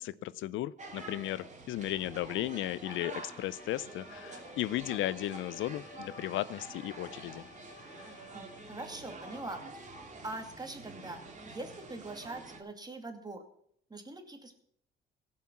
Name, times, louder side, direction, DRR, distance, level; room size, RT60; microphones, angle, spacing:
voice 1, 0.0-7.5, left 14 dB, 80° left, 0.5 m, -35 dB
sound 1, 0.8-12.6, right 3 dB, 35° right, 2.6 m, -47 dB
Bowed string instrument, 2.6-9.7, left 6 dB, 60° left, 1.2 m, -57 dB
voice 2, 8.0-9.9 10.2-11.2 11.5-13.4 13.9-14.6, right 2 dB, 20° right, 2.3 m, -43 dB
16.5 x 5.7 x 7.3 m
cardioid pair, 90°, 20 cm